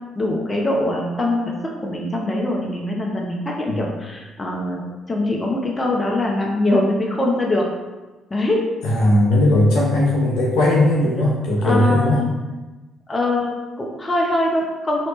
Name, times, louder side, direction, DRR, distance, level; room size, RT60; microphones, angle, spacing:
voice 1, 0.2-4.8 5.1-7.7 8.3-8.6 11.6-12.3 13.1-15.1, left 1 dB, 30° left, -1 dB, 0.9 m, -22 dB
voice 2, 8.8-12.2, left 1 dB, 70° left, -4 dB, 1.0 m, -17 dB
4.4 x 3.1 x 3.1 m, 1.2 s
hypercardioid pair, 45°, 0 cm